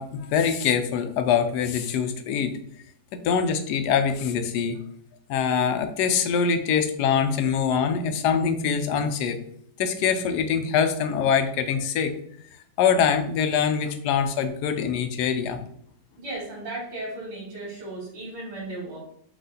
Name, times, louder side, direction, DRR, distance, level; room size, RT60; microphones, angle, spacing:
voice 1, 0.0-2.6 3.1-4.8 5.3-9.4 9.8-12.1 12.8-15.6, left 7 dB, 75° left, 7 dB, 1.1 m, -24 dB
voice 2, 16.2-19.1, right 2 dB, 90° right, -7 dB, 2.0 m, -35 dB
4.8 x 2.4 x 3.8 m, 0.67 s
omnidirectional pair, 1.9 m